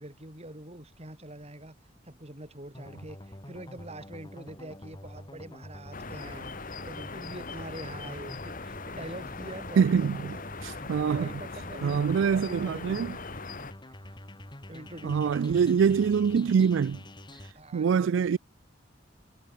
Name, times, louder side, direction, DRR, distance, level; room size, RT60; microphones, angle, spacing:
voice 1, 0.0-1.8 2.0-13.2 13.9-14.2 14.7-16.1 17.5-18.3, right 1 dB, 35° right, 6.4 m, -45 dB
sound 1, 2.7-17.5, left 1 dB, 25° left, 3.7 m, -47 dB
sound 2, 5.9-13.7, left 4 dB, 45° left, 2.2 m, -40 dB
voice 2, 9.8-10.4 10.6-11.3 11.8-13.1 15.0-17.0 17.7-18.4, right 6 dB, 90° right, 0.4 m, -24 dB
head